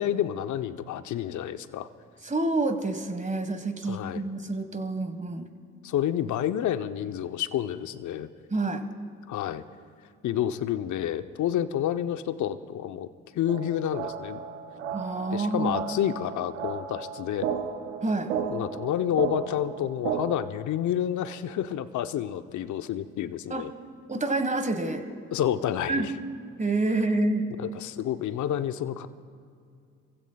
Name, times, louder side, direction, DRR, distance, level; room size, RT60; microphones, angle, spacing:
voice 1, 0.0-1.9 3.9-4.2 5.8-8.3 9.3-9.6 10.2-13.1 13.3-14.4 15.3-17.5 18.5-23.7 25.3-26.1 27.5-29.1, left 10 dB, 55° left, 11 dB, 0.8 m, -29 dB
voice 2, 2.2-5.5 8.5-8.8 14.9-15.8 18.0-18.3 23.5-23.6 24.1-25.1 25.9-26.1 26.6-27.5, right 2 dB, 20° right, 8 dB, 1.4 m, -28 dB
sound 1, 13.5-20.5, right 7 dB, 90° right, 0.7 m, -34 dB
28.5 x 15.5 x 2.3 m, 2.4 s
hypercardioid pair, 50°, 36 cm